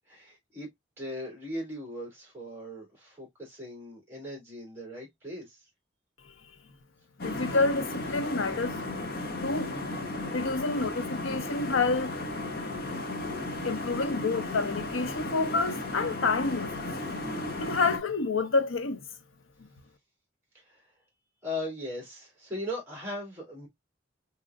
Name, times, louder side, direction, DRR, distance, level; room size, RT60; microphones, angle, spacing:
voice 1, 0.1-0.7 1.0-5.6 20.5-20.8 21.4-23.7, left 1 dB, 10° right, 2.8 m, -39 dB
voice 2, 7.2-9.1 9.4-9.7 10.3-12.1 13.6-16.7 17.6-19.0, left 3 dB, 85° left, 0.7 m, -28 dB
sound 1, 7.2-18.0, left 2 dB, 50° left, 0.9 m, -35 dB
4.8 x 3.1 x 2.4 m
head